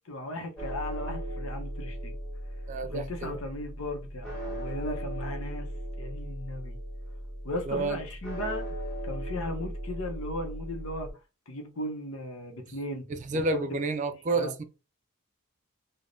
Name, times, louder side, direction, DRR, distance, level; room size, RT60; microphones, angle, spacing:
voice 1, 0.1-2.2 2.8-5.7 6.0-6.8 7.4-8.6 9.0-11.1 11.5-13.1 14.3-14.5, left 1 dB, 75° left, 0.7 m, -36 dB
sound 1, 0.6-11.1, equal, 5° left, 1.1 m, -37 dB
voice 2, 2.7-3.4 7.7-8.0 13.1-14.6, right 3 dB, 35° right, 0.3 m, -30 dB
3.3 x 2.1 x 2.5 m
head